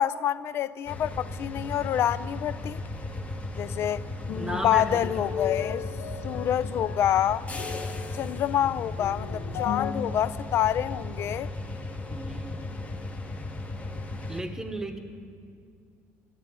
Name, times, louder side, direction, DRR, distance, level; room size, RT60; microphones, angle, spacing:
voice 1, 0.0-2.8 3.6-4.0 4.5-5.8 6.2-7.5 8.1-11.5, left 11 dB, 50° left, 0.4 m, -27 dB
sound 1, 0.9-14.4, left 2 dB, 25° left, 1.2 m, -36 dB
sound 2, 4.3-9.9, left 7 dB, 75° left, 1.0 m, -36 dB
voice 2, 4.3-5.0 12.1-12.7 14.3-15.0, right 2 dB, 10° right, 1.0 m, -35 dB
13.5 x 8.0 x 9.5 m
cardioid pair, 125°, 5 cm